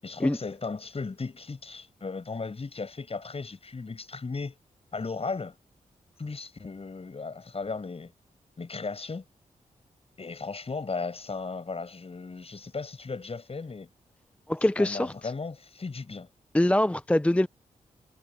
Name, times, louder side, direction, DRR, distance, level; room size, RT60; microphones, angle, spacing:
voice 1, 0.0-4.5 4.9-5.6 6.2-8.1 8.6-9.2 10.2-13.9 14.8-16.3, left 4 dB, 45° left, 7.7 m, -36 dB
voice 2, 14.5-15.3 16.5-17.5, left 1 dB, 10° left, 0.5 m, -24 dB
cardioid pair, 55°, 14 cm